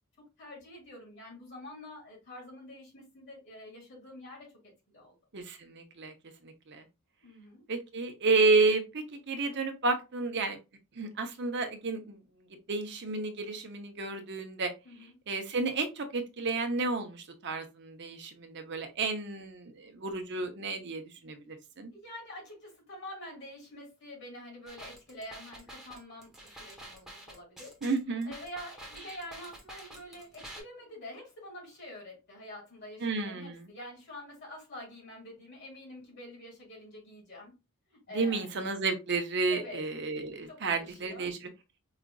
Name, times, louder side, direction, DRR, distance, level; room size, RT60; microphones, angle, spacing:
voice 1, 0.4-4.5 4.9-5.1 7.2-7.6 14.8-15.1 21.9-27.8 28.2-37.5 37.9-38.5 39.5-39.9 40.5-41.3, left 1 dB, 50° left, 2.3 m, -46 dB
voice 2, 5.3-6.1 6.4-6.8 7.7-10.6 11.0-12.2 12.7-14.7 15.3-21.9 27.8-28.3 33.0-33.7 38.1-41.5, right 3 dB, 55° right, 0.7 m, -31 dB
sound 1, 24.7-30.6, right 1 dB, ahead, 1.0 m, -48 dB
4.8 x 2.4 x 2.3 m
head